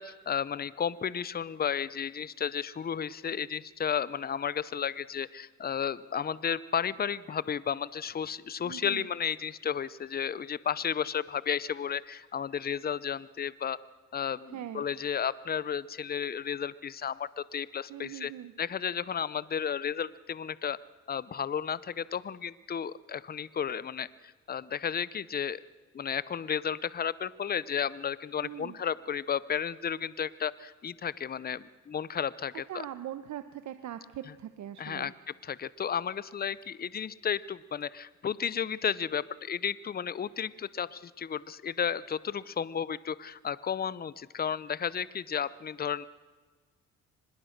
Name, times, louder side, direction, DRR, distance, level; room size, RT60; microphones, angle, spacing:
voice 1, 0.0-13.8 14.1-18.3 18.6-20.8 21.1-25.6 25.9-32.9 34.8-35.1 35.4-46.1, left 8 dB, 30° left, 19 dB, 0.7 m, -33 dB
voice 2, 8.6-9.1 14.5-14.9 17.9-18.5 28.4-28.8 32.7-35.1, right 11 dB, 70° right, 10 dB, 1.0 m, -41 dB
24.0 x 21.0 x 6.6 m, 1.4 s
cardioid pair, 90°, 30 cm